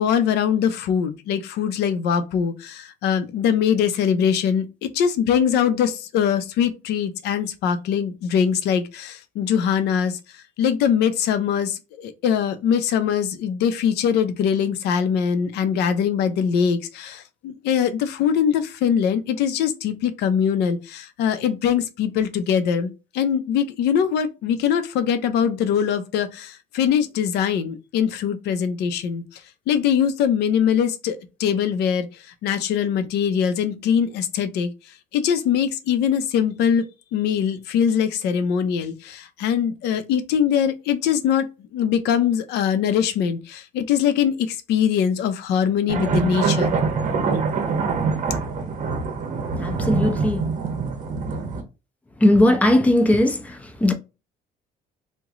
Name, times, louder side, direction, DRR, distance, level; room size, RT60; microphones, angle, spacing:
voice 1, 0.0-29.4 29.7-36.8 37.1-41.5 41.7-46.8, left 8 dB, 80° left, 0.6 m, -22 dB
sound 1, 45.9-51.6, right 5 dB, 50° right, 1.0 m, -24 dB
voice 2, 49.6-50.5 52.2-53.9, left 1 dB, 10° left, 0.6 m, -18 dB
3.0 x 2.2 x 3.6 m
cardioid pair, 110°, 17 cm